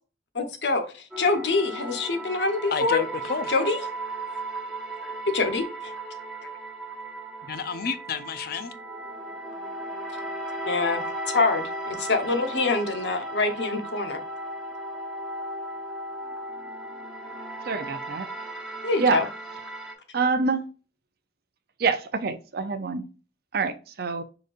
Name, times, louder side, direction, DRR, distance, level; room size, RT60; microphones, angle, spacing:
voice 1, 0.3-0.8 1.2-3.0 3.5-3.8 5.3-5.9 10.7-14.2 18.8-19.2, left 3 dB, 75° left, 0.9 m, -25 dB
sound 1, 1.1-19.9, right 1 dB, ahead, 1.1 m, -36 dB
voice 2, 2.7-3.5 7.4-8.7, left 5 dB, 60° left, 0.5 m, -30 dB
voice 3, 17.7-18.3 19.0-19.3 20.1-20.6 21.8-23.1 23.5-24.2, right 4 dB, 60° right, 0.6 m, -26 dB
5.1 x 3.9 x 2.5 m
head